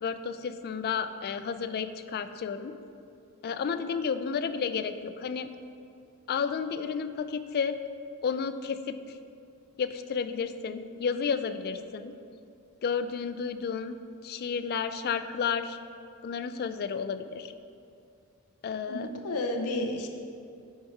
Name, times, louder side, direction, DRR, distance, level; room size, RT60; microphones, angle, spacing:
voice 1, 0.0-2.8 3.4-5.5 6.3-7.8 8.2-9.0 9.8-12.1 12.8-15.8 16.2-17.5 18.6-19.1, left 6 dB, 45° left, 10 dB, 0.3 m, -32 dB
voice 2, 18.9-20.1, left 1 dB, 80° left, 3 dB, 0.7 m, -31 dB
9.2 x 4.3 x 4.7 m, 2.5 s
head